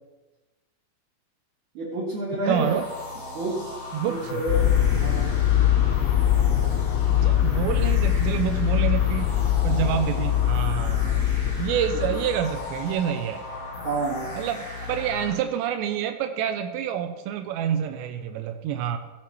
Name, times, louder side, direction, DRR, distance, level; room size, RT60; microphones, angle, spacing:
voice 1, 1.7-2.7 3.3-4.7 5.0-5.3 12.1-12.2 13.8-14.4, right 1 dB, 55° right, -6 dB, 2.7 m, -29 dB
voice 2, 2.3-2.8 3.9-4.4 7.1-9.4 9.6-11.2 11.5-13.4 14.3-19.0, right 9 dB, 85° right, 7 dB, 2.7 m, -27 dB
sound 1, 2.5-15.3, left 2 dB, 25° left, 3.3 m, -38 dB
sound 2, 4.5-12.8, left 11 dB, 85° left, 3.1 m, -22 dB
14.0 x 8.8 x 3.1 m, 1.1 s
omnidirectional pair, 5.0 m